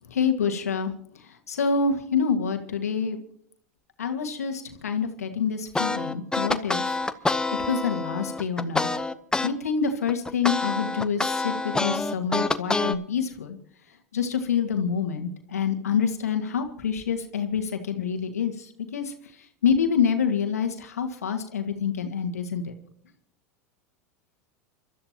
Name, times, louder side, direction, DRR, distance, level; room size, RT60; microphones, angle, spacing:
voice 1, 0.1-0.9 1.5-3.2 4.0-7.0 7.7-8.9 9.4-13.6 14.1-18.5 18.9-19.1 19.6-22.7, left 6 dB, 85° left, 6 dB, 1.7 m, -27 dB
sound 1, 5.7-9.5 9.9-12.9, left 3 dB, 10° left, 0.9 m, -26 dB
29.0 x 13.0 x 2.9 m, 0.64 s
hypercardioid pair, 90°, 8 cm